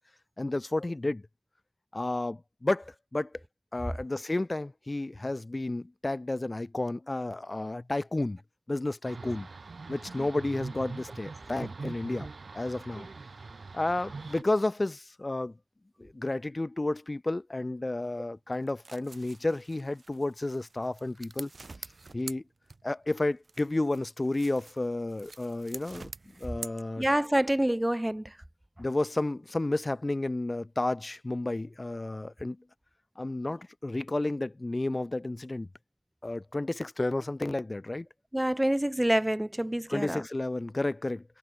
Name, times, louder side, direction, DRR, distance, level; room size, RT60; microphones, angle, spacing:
voice 1, 0.4-1.2 1.9-3.3 3.7-8.4 8.7-9.5 9.9-13.1 13.7-15.5 16.0-21.5 22.1-22.4 22.8-26.1 26.4-27.0 28.8-32.6 33.2-35.7 36.2-38.1 39.9-41.2, left 2 dB, 40° left, 0.3 m, -31 dB
sound 1, 9.0-14.4, right 4 dB, 90° right, 2.5 m, -42 dB
sound 2, 18.5-23.1 23.4-27.4, right 3 dB, 70° right, 3.2 m, -47 dB
voice 2, 27.0-28.4 38.3-40.3, right 1 dB, 15° right, 0.5 m, -27 dB
wide cardioid pair, 60°, 0 cm